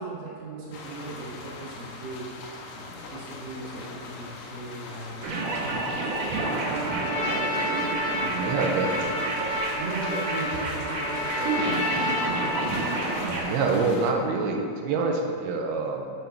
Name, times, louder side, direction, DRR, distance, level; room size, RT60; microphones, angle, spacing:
voice 1, 0.0-2.3 2.7-7.7 8.0-8.5 9.3-12.8, right 2 dB, 50° right, -6 dB, 2.4 m, -38 dB
sound 1, 0.7-14.1, left 3 dB, 80° left, 2.4 m, -41 dB
sound 2, 5.2-13.4, right 3 dB, 70° right, 2.2 m, -29 dB
Trumpet, 6.2-13.0, left 2 dB, 55° left, 2.2 m, -31 dB
voice 2, 8.3-9.4 13.3-16.1, right 4 dB, 90° right, 2 dB, 2.5 m, -26 dB
6.9 x 5.3 x 4.4 m, 2.4 s
omnidirectional pair, 4.3 m